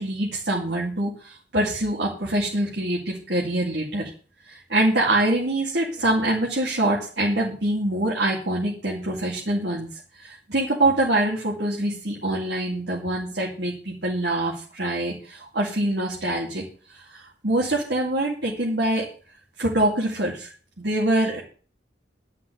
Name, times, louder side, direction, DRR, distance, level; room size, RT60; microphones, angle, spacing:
voice 1, 0.0-4.1 4.5-9.9 10.2-16.6 16.9-19.1 19.6-20.5 20.8-21.4, right 1 dB, 70° right, -3 dB, 2.5 m, -24 dB
12.0 x 5.8 x 7.9 m, 0.42 s
head